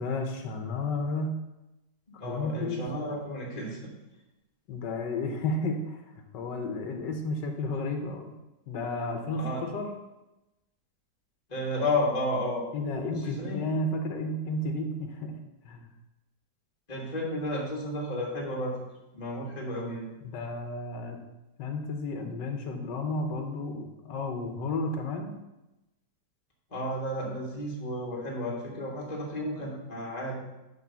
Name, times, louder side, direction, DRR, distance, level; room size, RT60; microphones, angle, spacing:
voice 1, 0.0-1.4 2.2-2.9 4.7-6.0 6.3-8.3 8.7-9.9 12.7-15.3 15.6-15.9 20.2-21.2 21.6-25.4, left 2 dB, 90° left, 5 dB, 1.6 m, -32 dB
voice 2, 2.1-3.8 9.4-9.6 11.5-12.6 13.2-13.6 16.9-18.8 19.1-20.1 26.7-30.4, left 1 dB, 25° left, -2 dB, 1.6 m, -32 dB
8.7 x 3.8 x 6.8 m, 0.97 s
omnidirectional pair, 1.8 m